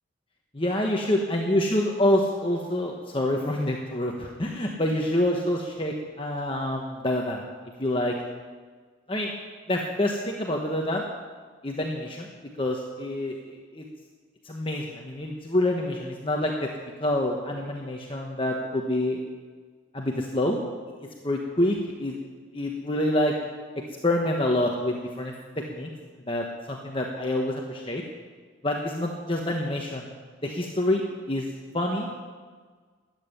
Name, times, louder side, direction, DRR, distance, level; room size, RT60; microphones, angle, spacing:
voice 1, 0.5-7.4 7.8-8.1 9.1-9.3 9.7-11.1 11.6-12.3 12.6-13.8 14.4-16.7 17.0-19.2 19.9-20.6 21.2-22.1 22.5-23.3 24.0-25.9 26.3-28.0 28.6-30.0 30.4-31.5 31.7-32.1, left 1 dB, 25° left, 0 dB, 1.2 m, -27 dB
13.5 x 9.1 x 9.9 m, 1.5 s
head